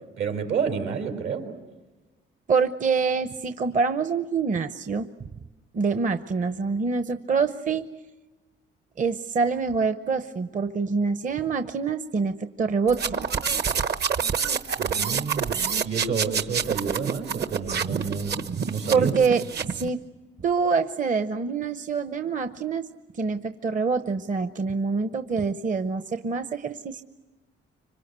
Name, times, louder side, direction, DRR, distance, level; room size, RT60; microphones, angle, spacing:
voice 1, 0.2-1.5 14.8-15.5 15.8-18.3 18.7-19.1, right 6 dB, 80° right, 3 dB, 4.4 m, -29 dB
voice 2, 2.5-5.1 5.7-7.9 9.0-13.0 18.9-20.0 20.4-22.9 23.1-27.0, right 5 dB, 40° right, 9 dB, 0.9 m, -25 dB
sound 1, 12.9-19.9, right 6 dB, 55° right, 1.2 m, -27 dB
25.5 x 25.5 x 8.2 m, 1.2 s
cardioid pair, 90°, 20 cm